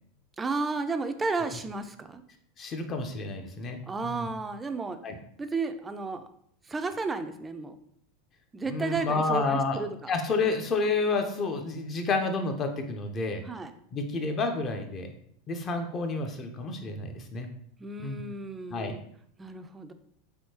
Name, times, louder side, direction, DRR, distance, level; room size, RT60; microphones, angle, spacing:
voice 1, 0.4-2.2 3.9-5.0 5.4-6.3 6.7-7.8 8.5-10.1 13.4-13.7 17.8-19.0 19.4-19.9, right 3 dB, 15° right, 8 dB, 0.3 m, -33 dB
voice 2, 2.6-4.3 5.0-5.2 8.6-9.8 10.1-13.4 13.9-15.1 15.5-17.5 18.0-18.2 18.7-18.9, left 3 dB, 35° left, 5 dB, 0.5 m, -30 dB
3.5 x 2.7 x 2.8 m, 0.66 s
hypercardioid pair, 100°, 0 cm